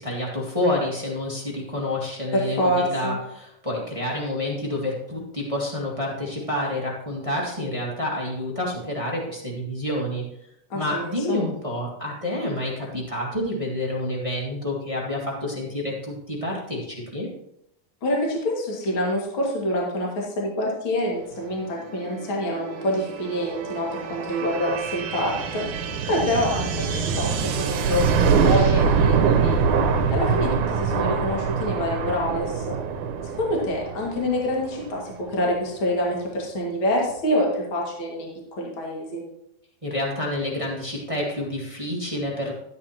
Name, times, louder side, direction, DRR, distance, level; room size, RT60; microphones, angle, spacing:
voice 1, 0.0-10.2 10.7-17.3 39.8-42.5, left 1 dB, 20° right, -3 dB, 0.8 m, -28 dB
voice 2, 2.3-3.2 10.7-11.4 18.0-25.6 26.1-29.6 30.1-32.8 33.2-39.2, left 1 dB, 40° left, -2 dB, 2.4 m, -26 dB
sound 1, 21.8-35.3, right 6 dB, 70° right, 2.1 m, -24 dB
12.5 x 9.7 x 2.9 m, 0.79 s
omnidirectional pair, 3.9 m